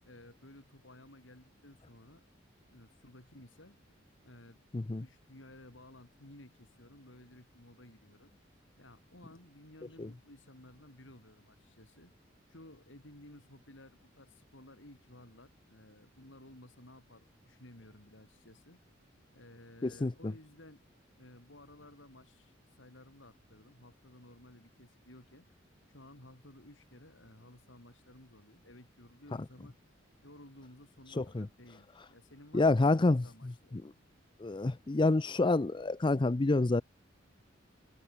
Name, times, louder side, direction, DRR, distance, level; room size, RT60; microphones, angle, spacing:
voice 1, 0.0-2.2 2.7-3.8 4.2-4.6 5.0-8.4 8.8-12.1 12.5-18.8 19.3-20.8 21.2-25.5 25.9-29.8 30.2-33.8 34.5-34.7, left 1 dB, 75° left, 5.2 m, -56 dB
voice 2, 19.8-20.3 31.2-31.5 32.5-33.9 34.4-36.8, left 2 dB, 25° left, 0.5 m, -28 dB
head